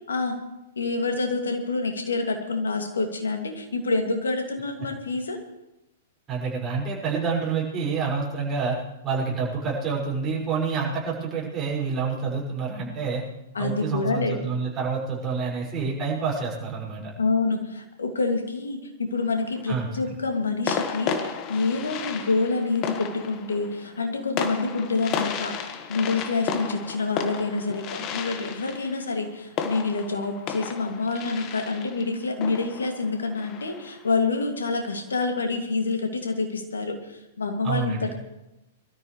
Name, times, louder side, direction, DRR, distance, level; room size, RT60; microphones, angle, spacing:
voice 1, 0.8-5.4 13.5-14.4 17.2-38.1, left 3 dB, 80° left, 4 dB, 2.4 m, -27 dB
voice 2, 6.3-13.2 13.6-17.1 19.7-19.9 37.6-38.2, right 5 dB, 25° right, -5 dB, 5.9 m, -28 dB
sound 1, 19.2-19.8 20.7-34.1, left 7 dB, 35° left, 1.5 m, -33 dB
23.5 x 13.0 x 3.3 m, 0.93 s
figure-of-eight pair, 105°, 0 cm